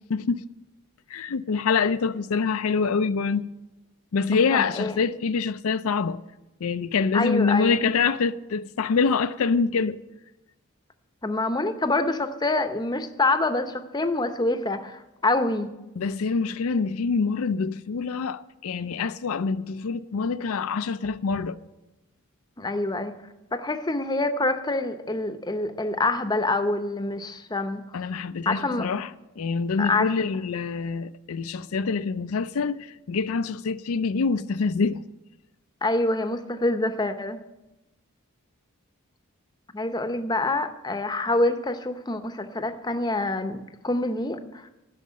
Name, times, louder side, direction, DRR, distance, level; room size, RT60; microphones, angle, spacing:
voice 1, 0.1-0.4 1.1-3.5 4.1-6.2 6.6-10.0 16.0-21.6 27.9-29.1 29.4-35.0, left 5 dB, 75° left, 0.4 m, -25 dB
voice 2, 4.3-5.0 7.1-7.8 11.2-15.7 22.6-23.2 23.5-27.8 28.5-28.9 29.8-30.1 35.8-37.4 39.7-44.4, left 2 dB, 20° left, 0.7 m, -26 dB
12.0 x 6.5 x 9.4 m
head